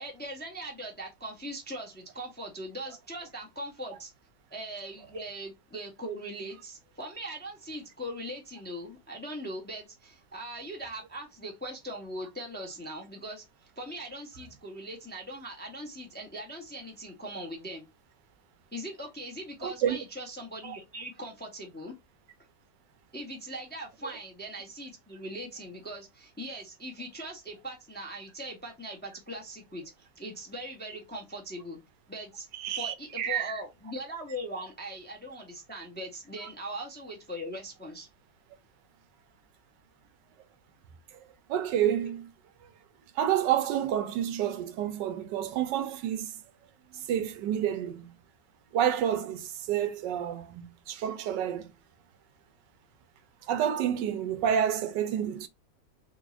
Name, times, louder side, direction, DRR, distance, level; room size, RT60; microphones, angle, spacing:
voice 1, 0.0-4.1 4.5-13.4 13.8-17.8 18.7-22.0 23.1-31.8 32.1-32.5 32.7-38.1, right 1 dB, 10° left, 0.6 m, -40 dB
voice 2, 19.6-20.0 20.6-20.7 32.5-33.6 41.5-42.3 43.2-46.3 46.9-48.1 48.7-51.7 53.5-55.5, right 10 dB, 90° right, 1.3 m, -29 dB
3.9 x 2.7 x 2.4 m
omnidirectional pair, 1.9 m